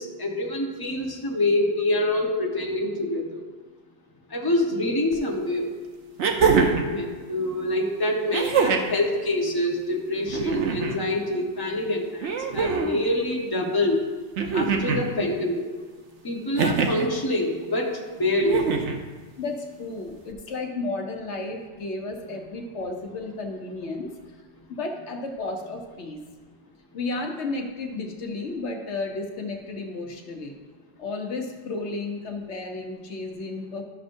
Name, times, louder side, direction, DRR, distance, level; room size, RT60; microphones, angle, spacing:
voice 1, 0.0-3.4 4.3-5.7 6.6-14.0 14.5-15.7 16.2-18.7, left 1 dB, 20° left, -1 dB, 1.1 m, -26 dB
sound 1, 5.1-5.2 6.2-6.9 8.3-9.0 10.3-11.0 12.2-13.0 14.4-15.1 16.6-17.1 18.4-19.0 20.3-20.4, right 5 dB, 85° right, 1.1 m, -23 dB
voice 2, 19.4-24.1 24.7-26.2 26.9-30.6 31.0-33.8, left 3 dB, 80° left, 2 dB, 1.2 m, -33 dB
13.0 x 6.3 x 2.6 m, 1.4 s
omnidirectional pair, 1.2 m